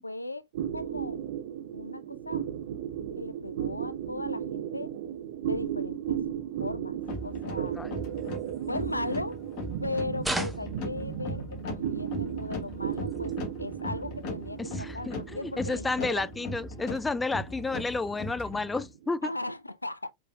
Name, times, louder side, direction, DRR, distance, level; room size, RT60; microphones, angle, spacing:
voice 1, 0.0-0.4 0.7-1.2 1.7-2.4 3.2-4.9 5.4-6.2 6.6-7.8 8.7-9.4 9.8-13.3 13.6-16.2 19.2-20.1, left 2 dB, 85° left, 0.4 m, -37 dB
sound 1, 0.5-19.3, right 10 dB, 55° right, 0.5 m, -35 dB
sound 2, 7.0-18.9, left 2 dB, 45° left, 1.2 m, -39 dB
sound 3, 8.1-9.8 10.2-11.7 12.2-13.6 13.9-14.3 14.6-14.7 15.0-15.4 15.9-16.1 16.4-16.9 17.2-18.4, right 1 dB, 5° right, 0.7 m, -41 dB
voice 2, 14.6-19.3, left 3 dB, 10° left, 0.3 m, -31 dB
4.7 x 4.6 x 2.3 m
figure-of-eight pair, 90°, 0 cm